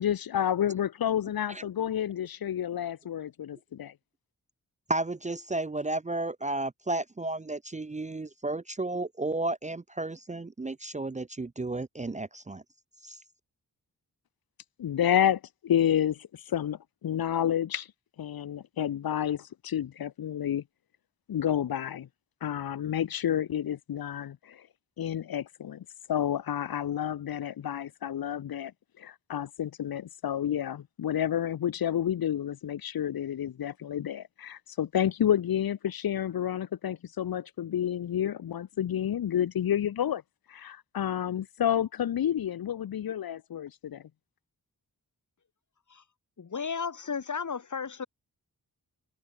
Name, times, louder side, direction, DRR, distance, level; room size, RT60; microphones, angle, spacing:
voice 1, 0.0-3.9 14.8-17.9 18.2-20.6 21.3-22.1 22.4-24.7 25.0-28.7 29.0-40.2 40.5-44.0, left 10 dB, 85° left, 0.8 m, -30 dB
voice 2, 4.9-12.6 13.0-13.2, right 2 dB, 20° right, 0.6 m, -33 dB
voice 3, 46.4-48.1, left 6 dB, 55° left, 3.5 m, -34 dB
open air
wide cardioid pair, 160°, 35 cm